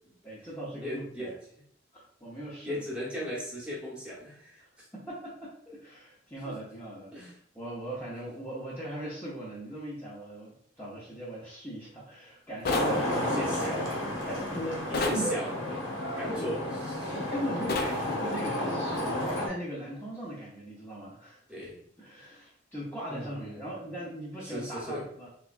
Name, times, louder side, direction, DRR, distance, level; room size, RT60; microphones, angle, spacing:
voice 1, 0.2-1.3 1.9-2.8 4.9-7.1 7.5-13.8 14.3-15.4 16.3-16.5 17.1-21.4 22.0-25.3, right 1 dB, 10° left, -9 dB, 0.6 m, -39 dB
voice 2, 0.8-1.3 2.6-4.9 6.5-6.6 7.1-7.4 13.0-14.1 14.9-15.5 15.8-15.9 16.2-17.1 21.5-21.7 23.1-23.7 24.4-25.0, equal, 5° right, -6 dB, 1.0 m, -37 dB
sound 1, 12.6-13.0 14.9-15.2 17.7-18.0, left 3 dB, 55° left, 0.5 m, -28 dB
Traffic noise roadway noise, 12.7-19.5, left 1 dB, 80° left, 1.1 m, -32 dB
3.3 x 3.0 x 2.4 m, 0.67 s
head